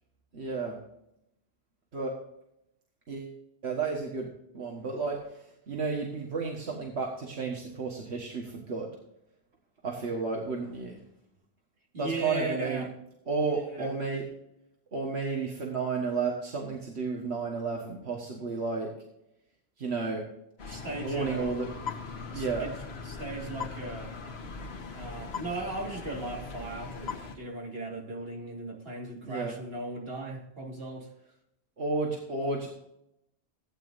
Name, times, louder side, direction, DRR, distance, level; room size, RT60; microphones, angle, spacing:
voice 1, 0.3-0.8 1.9-2.1 3.1-3.3 3.6-4.3 4.5-8.9 9.8-11.0 12.0-12.8 13.3-14.3 14.9-18.9 19.8-20.2 21.0-21.7 22.3-22.7 29.2-29.5 31.8-32.7, right 4 dB, 85° right, 0 dB, 1.8 m, -32 dB
voice 2, 11.9-12.9 13.6-13.9 20.7-21.5 22.3-22.7 23.0-24.1 24.9-31.1, right 2 dB, 65° right, -1 dB, 2.7 m, -37 dB
sound 1, 20.6-27.4, left 4 dB, 75° left, 1.5 m, -40 dB
16.0 x 9.2 x 2.6 m, 0.79 s
omnidirectional pair, 1.1 m